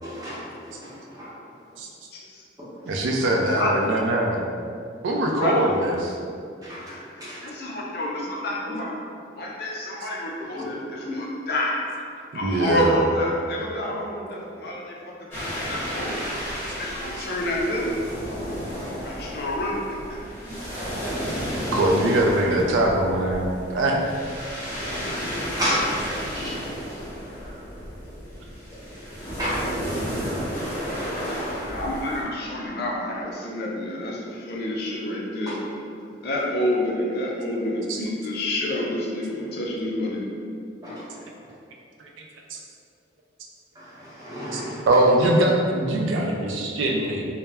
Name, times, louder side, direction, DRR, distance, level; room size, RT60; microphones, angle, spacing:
voice 1, 0.0-1.4 2.6-2.9 5.1-5.2 6.6-7.4 10.7-10.8 11.0-11.1 20.4-20.6 20.8-21.6 25.6-27.1 27.4-27.5 29.4-31.2 35.5-35.6 40.8-41.1 43.7-44.9, equal, 20° right, -10 dB, 0.7 m, -33 dB
voice 2, 2.1-2.4 3.4-3.7 5.3-5.8 7.4-9.0 9.3-11.9 12.3-16.2 16.8-18.0 18.9-20.0 31.6-35.6 36.2-40.3, left 1 dB, 55° left, -2 dB, 0.4 m, -28 dB
voice 3, 2.9-4.4 5.0-6.1 12.3-13.0 21.5-24.0 37.9-38.0 42.0-42.1 42.5-42.6 44.5-47.3, right 1 dB, 90° right, 0 dB, 0.4 m, -22 dB
sound 1, 15.3-32.2, equal, 15° left, 0.8 m, -32 dB
2.1 x 2.0 x 3.3 m, 2.4 s
head